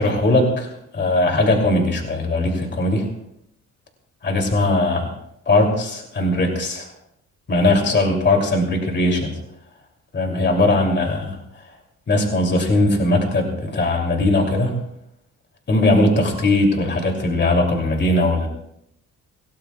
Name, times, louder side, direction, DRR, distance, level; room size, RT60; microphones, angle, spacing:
voice 1, 0.0-3.1 4.2-5.1 5.5-6.9 7.5-9.4 10.1-11.4 12.1-14.8 15.7-18.5, left 2 dB, 35° left, 2 dB, 2.9 m, -19 dB
25.5 x 18.0 x 2.4 m, 0.79 s
cardioid pair, 120°, 31 cm